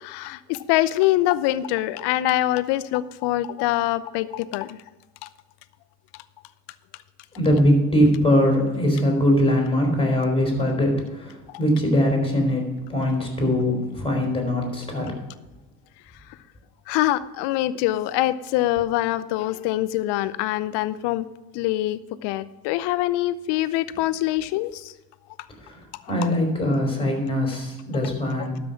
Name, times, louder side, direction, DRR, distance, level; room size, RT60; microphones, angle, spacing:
voice 1, 0.0-4.8 5.2-5.3 16.9-21.2 21.5-24.9, left 15 dB, 60° left, 15 dB, 0.8 m, -24 dB
voice 2, 7.3-15.1 25.6-25.8 26.1-28.5, equal, 10° left, 1 dB, 4.5 m, -22 dB
12.5 x 6.1 x 6.0 m, 1.1 s
hypercardioid pair, 70°, 47 cm